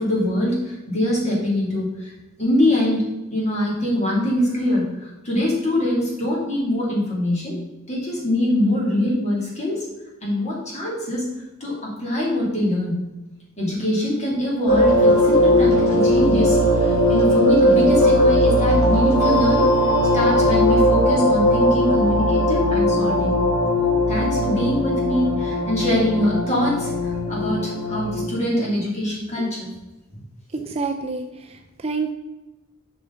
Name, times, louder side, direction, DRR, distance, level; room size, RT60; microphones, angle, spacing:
voice 1, 0.0-2.1 2.4-3.0 3.3-7.6 7.9-9.9 10.2-11.3 11.6-13.0 13.6-19.7 20.1-23.4 24.1-29.7, left 1 dB, 30° left, -4 dB, 2.5 m, -23 dB
sound 1, 14.7-28.2, equal, 85° left, 2.7 m, -18 dB
voice 2, 30.5-32.1, right 4 dB, 30° right, 5 dB, 0.4 m, -28 dB
6.8 x 6.3 x 3.9 m, 1.1 s
head